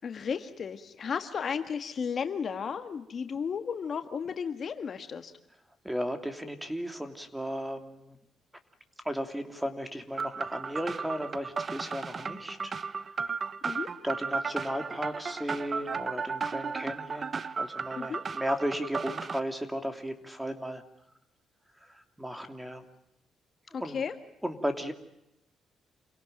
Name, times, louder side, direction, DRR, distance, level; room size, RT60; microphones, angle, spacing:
voice 1, 0.0-5.3 13.6-13.9 18.0-18.2 23.7-24.1, left 6 dB, 50° left, 8 dB, 1.7 m, -34 dB
voice 2, 5.8-8.2 9.0-12.7 14.0-20.8 21.8-22.8 23.8-24.0 24.4-24.9, equal, 5° right, 7 dB, 2.8 m, -35 dB
sound 1, 10.2-19.4, right 5 dB, 40° right, 0.9 m, -35 dB
28.0 x 17.5 x 9.1 m, 0.83 s
cardioid pair, 90°, 0 cm